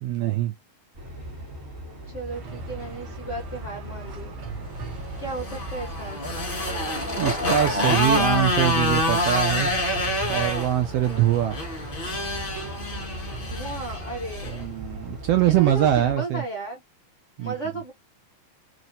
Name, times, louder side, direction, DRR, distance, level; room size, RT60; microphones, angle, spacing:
voice 1, 0.0-0.5 7.2-9.7 10.3-11.6 14.4-16.4 17.4-17.5, right 12 dB, 80° right, 1.4 m, -23 dB
sound 1, 0.9-16.1, equal, 30° right, 1.5 m, -38 dB
voice 2, 2.1-4.3 5.2-6.4 13.4-14.7 15.5-16.8 17.4-17.9, right 2 dB, 75° left, 0.6 m, -34 dB
The Bingle Tree on a Sunday morning, 2.3-14.1, right 5 dB, 60° right, 1.1 m, -43 dB
Motorcycle, 5.1-14.6, left 1 dB, 30° left, 1.0 m, -27 dB
4.2 x 3.0 x 2.6 m
omnidirectional pair, 3.3 m